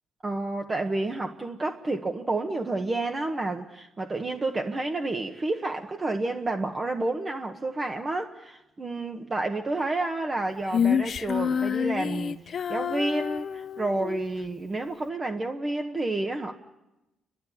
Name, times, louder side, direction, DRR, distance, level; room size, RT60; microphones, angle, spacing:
voice 1, 0.2-16.5, right 2 dB, 30° right, 4 dB, 1.3 m, -30 dB
Female singing, 10.7-14.2, left 7 dB, 55° left, 0.8 m, -28 dB
29.5 x 12.5 x 9.9 m, 0.98 s
cardioid pair, 90°, 0 cm